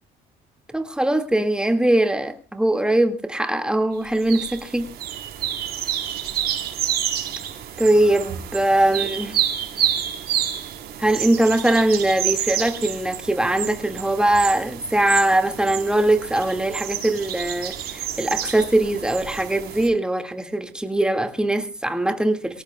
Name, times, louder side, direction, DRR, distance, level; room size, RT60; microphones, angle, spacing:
voice 1, 0.7-4.9 7.8-9.3 11.0-22.6, right 1 dB, 5° right, 2.1 m, -21 dB
sound 1, 4.2-19.9, right 10 dB, 65° right, 4.0 m, -29 dB
24.0 x 18.0 x 2.3 m
cardioid pair, 110°, 17 cm